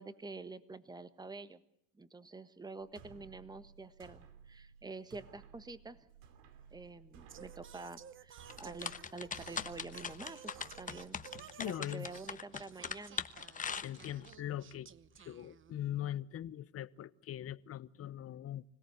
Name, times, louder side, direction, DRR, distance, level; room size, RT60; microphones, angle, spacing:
voice 1, 0.0-1.6 2.0-6.1 6.7-11.2 11.6-13.2, right 3 dB, 10° right, 1.4 m, -48 dB
sound 1, 2.8-12.3, right 6 dB, 65° right, 2.8 m, -57 dB
Singing, 7.3-16.0, right 9 dB, 35° right, 1.0 m, -56 dB
sound 2, 8.5-14.3, left 6 dB, 20° left, 1.1 m, -41 dB
voice 2, 11.6-12.1 13.8-14.9 15.2-18.6, left 12 dB, 40° left, 1.0 m, -41 dB
25.5 x 17.0 x 8.1 m
supercardioid pair, 110°, 37 cm